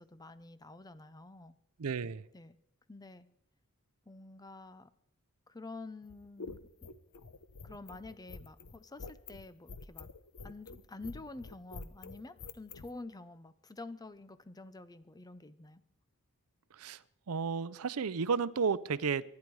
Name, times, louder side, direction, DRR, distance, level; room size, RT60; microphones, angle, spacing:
voice 1, 0.0-1.5 2.3-2.6 2.9-3.3 4.1-4.9 5.5-6.9 7.6-10.1 10.4-15.8, left 2 dB, 15° left, 0.7 m, -48 dB
voice 2, 1.8-2.2 16.8-17.0 17.3-19.2, right 5 dB, 70° right, 0.6 m, -32 dB
sound 1, 6.0-12.9, left 4 dB, 80° left, 0.9 m, -47 dB
23.5 x 10.5 x 4.8 m
head